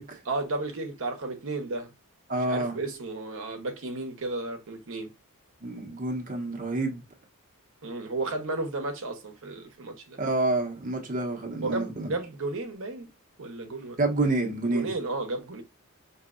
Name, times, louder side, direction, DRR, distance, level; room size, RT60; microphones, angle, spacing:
voice 1, 0.3-1.9 2.5-5.1 7.8-10.2 11.6-13.1 13.4-14.0 14.7-15.6, right 2 dB, 65° right, 0.9 m, -33 dB
voice 2, 2.3-2.8 5.6-7.0 10.2-12.1 14.0-14.9, right 2 dB, 35° right, 0.9 m, -28 dB
5.8 x 2.8 x 2.5 m
head